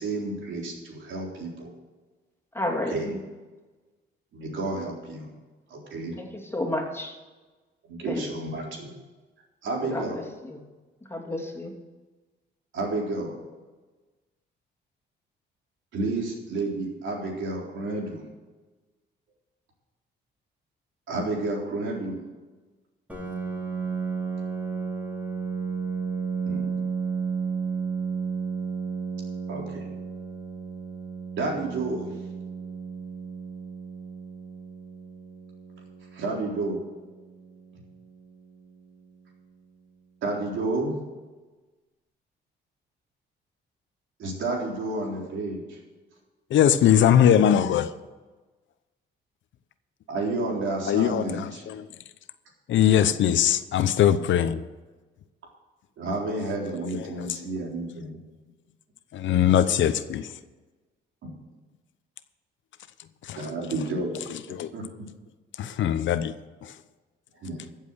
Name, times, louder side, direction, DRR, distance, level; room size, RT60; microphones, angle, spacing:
voice 1, 0.0-1.7 2.9-3.2 4.3-5.3 5.7-6.2 7.9-8.9 9.6-10.3 11.4-11.5 12.7-13.4 15.9-18.3 21.1-22.2 26.5-26.7 29.5-29.9 31.3-32.1 36.1-36.8 40.2-41.0 44.2-45.8 50.1-51.6 56.0-58.2 61.2-61.4 63.4-64.2 64.7-65.1 67.4-67.6, right 2 dB, 75° right, 3.8 m, -31 dB
voice 2, 2.5-3.2 6.2-6.3 6.5-7.1 8.1-8.2 9.9-10.6 11.1-11.7, left 1 dB, 10° left, 2.8 m, -31 dB
Piano, 23.1-38.5, right 5 dB, 5° right, 3.0 m, -33 dB
voice 3, 46.5-47.9 50.9-51.9 52.7-54.7 56.7-57.4 59.1-60.3 63.2-64.7 65.6-66.3 66.6-66.7, left 10 dB, 70° left, 0.8 m, -22 dB
14.5 x 7.5 x 6.4 m
cardioid pair, 90°, 20 cm